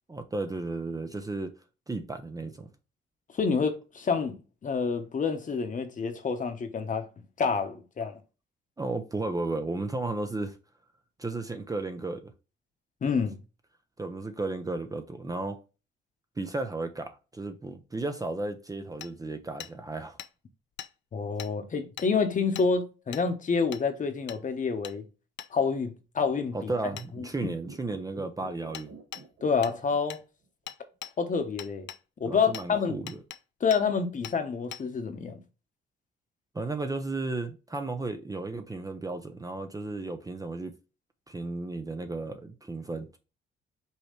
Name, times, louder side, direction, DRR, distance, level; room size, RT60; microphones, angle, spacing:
voice 1, 0.1-1.5 1.9-2.7 8.8-10.6 11.2-12.3 14.0-15.6 16.4-20.2 26.5-28.9 32.3-33.2 36.5-40.7 41.3-43.2, right 2 dB, 15° right, 0.6 m, -34 dB
voice 2, 3.3-7.1 7.4-8.2 13.0-13.4 21.1-25.0 25.5-26.7 27.2-27.3 29.4-30.2 31.2-31.9 32.2-33.0 33.6-35.4, left 5 dB, 40° left, 1.0 m, -28 dB
Hammer, 19.0-19.1 19.6-19.7 20.2-20.3 20.8-20.9 21.4-21.5 22.0-22.1 22.5-22.7 23.1-23.3 23.7-23.8 24.3-24.4 24.8-25.0 25.4-25.5 27.0-27.1 28.7-28.9 29.1-29.2 29.6-29.8 30.1-30.2 30.7-31.1 31.6-32.0 32.5-32.7 33.1-33.4 33.7-33.8 34.2-34.4 34.7-34.8, left 11 dB, 65° left, 0.5 m, -41 dB
sound 1, 26.8-30.2 30.5-30.6, right 3 dB, 70° right, 1.4 m, -47 dB
5.5 x 3.0 x 3.1 m
cardioid pair, 90°, 20 cm